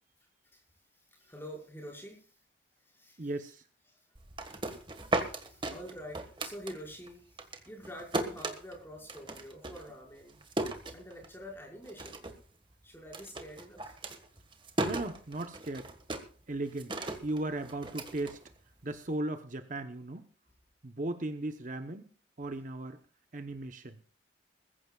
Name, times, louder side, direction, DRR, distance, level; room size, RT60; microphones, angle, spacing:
voice 1, 0.9-2.4 2.8-3.3 3.9-4.1 4.6-10.4 10.9-12.2 12.8-14.0, equal, 10° left, -2 dB, 5.4 m, -47 dB
voice 2, 3.2-3.6 14.8-15.9 16.5-16.9 17.2-18.4 18.8-20.3 20.8-22.1 22.4-23.0 23.3-24.0, right 2 dB, 45° right, 7 dB, 0.9 m, -36 dB
sound 1, 4.1-7.1 7.4-11.5 11.8-12.5 12.7-19.0, right 2 dB, 25° right, 1.6 m, -37 dB
22.0 x 15.0 x 2.4 m, 0.39 s
head